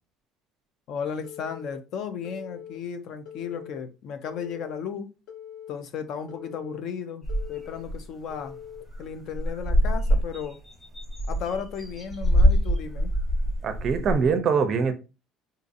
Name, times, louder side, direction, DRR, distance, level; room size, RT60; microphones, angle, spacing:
voice 1, 0.9-5.1 5.7-8.6 9.0-10.6 11.3-13.1, left 7 dB, 50° left, 0.4 m, -35 dB
Telephone, 1.2-1.8 2.2-2.8 3.3-3.8 4.3-4.8 5.3-5.8 6.3-6.8 7.3-7.8 8.3-8.8, left 9 dB, 70° left, 1.0 m, -42 dB
sound 1, 7.2-8.0 8.4-8.5 8.8-9.0 9.3-14.3, equal, 10° left, 1.1 m, -24 dB
voice 2, 13.6-14.9, right 5 dB, 35° right, 0.5 m, -23 dB
3.8 x 2.6 x 2.5 m
cardioid pair, 165°, 0 cm